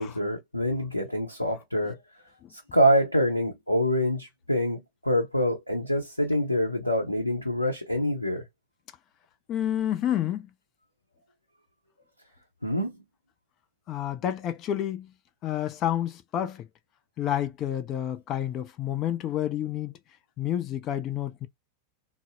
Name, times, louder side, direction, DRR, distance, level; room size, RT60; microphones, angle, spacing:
voice 1, 0.0-2.0 2.5-8.4 12.6-13.0, equal, 85° left, 0.6 m, -26 dB
voice 2, 9.5-10.5 13.9-15.1 15.4-16.6 17.2-19.9 20.4-21.5, left 11 dB, 35° left, 0.5 m, -29 dB
3.9 x 2.0 x 2.7 m
figure-of-eight pair, 90°, 0 cm